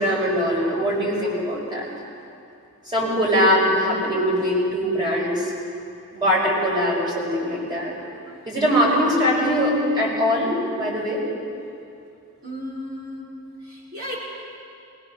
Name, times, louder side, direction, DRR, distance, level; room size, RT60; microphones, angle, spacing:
voice 1, 0.0-1.9 2.9-5.5 6.1-7.9 8.5-11.2, equal, 20° right, -5 dB, 6.2 m, -22 dB
voice 2, 12.4-13.2 13.7-14.1, left 1 dB, 45° right, -5 dB, 5.5 m, -34 dB
21.0 x 19.5 x 6.7 m, 2.6 s
head